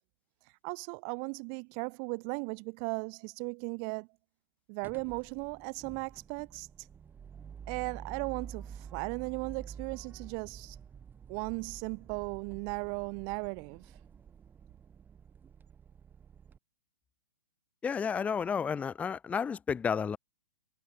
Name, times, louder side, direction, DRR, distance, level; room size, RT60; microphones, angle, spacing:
voice 1, 0.6-4.1 4.7-6.7 7.7-10.8 11.3-13.9, right 40 dB or more, 40° right, 1.2 m, -37 dB
sound 1, 4.8-16.6, right 7 dB, 15° right, 1.8 m, -49 dB
voice 2, 17.8-20.2, left 6 dB, 10° left, 0.6 m, -31 dB
hypercardioid pair, 120°, 12 cm